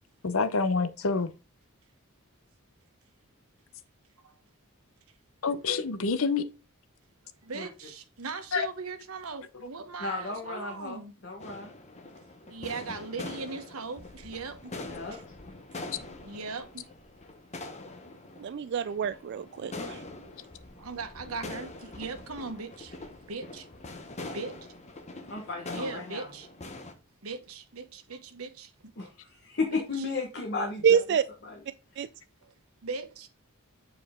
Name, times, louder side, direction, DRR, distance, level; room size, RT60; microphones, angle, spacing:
voice 1, 0.2-1.3 5.4-6.5 8.5-8.7, left 4 dB, 70° left, 0.7 m, -27 dB
voice 2, 7.4-11.1 12.4-14.7 15.1-15.2 16.2-16.8 20.3-20.4 20.8-23.0 23.3-23.7 24.3-24.7 25.3-25.4 25.7-26.5 27.2-28.7 29.0-29.1 29.7-29.8 32.4-32.5 32.8-33.3, right 4 dB, 85° right, 1.1 m, -39 dB
voice 3, 10.0-11.7 14.8-15.2 25.3-26.3 29.0-31.0 31.4-31.6, left 3 dB, 55° left, 1.3 m, -34 dB
sound 1, 11.4-26.9, left 2 dB, 30° left, 1.1 m, -43 dB
voice 4, 18.4-20.0 30.8-31.2 32.0-32.1, right 7 dB, 55° right, 0.3 m, -26 dB
7.4 x 4.6 x 3.6 m
head